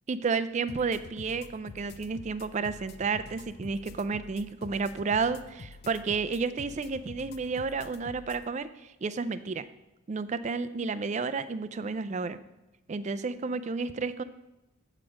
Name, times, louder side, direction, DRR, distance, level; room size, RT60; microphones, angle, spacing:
voice 1, 0.1-9.7 10.1-12.4 12.9-14.2, right 4 dB, 35° right, 13 dB, 0.3 m, -31 dB
sound 1, 0.7-8.4, left 3 dB, 45° left, 0.4 m, -47 dB
8.7 x 4.8 x 6.2 m, 0.97 s
head